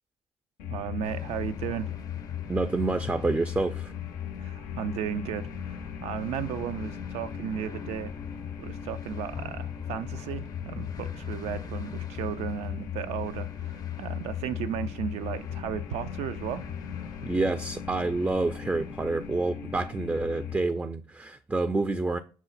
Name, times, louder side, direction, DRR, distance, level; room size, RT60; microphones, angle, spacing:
sound 1, 0.6-20.6, left 9 dB, 85° left, 0.5 m, -37 dB
voice 1, 0.7-1.9 4.4-8.1 8.6-16.6, right 9 dB, 75° right, 0.4 m, -35 dB
sound 2, 1.0-19.4, left 4 dB, 35° left, 0.6 m, -45 dB
voice 2, 2.5-3.9 17.2-22.2, right 3 dB, 15° right, 0.4 m, -28 dB
6.0 x 2.0 x 4.0 m
supercardioid pair, 70°, 11 cm